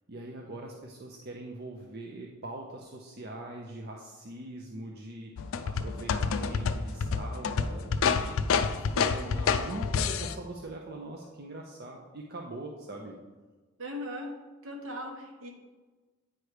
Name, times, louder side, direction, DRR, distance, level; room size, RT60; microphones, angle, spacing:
voice 1, 0.1-13.1, right 1 dB, 50° right, 0 dB, 0.6 m, -42 dB
sound 1, 5.4-10.3, left 5 dB, 70° left, 0.4 m, -28 dB
voice 2, 13.8-14.4 14.6-15.5, left 1 dB, 75° right, 1 dB, 1.3 m, -38 dB
9.1 x 3.3 x 4.8 m, 1.3 s
head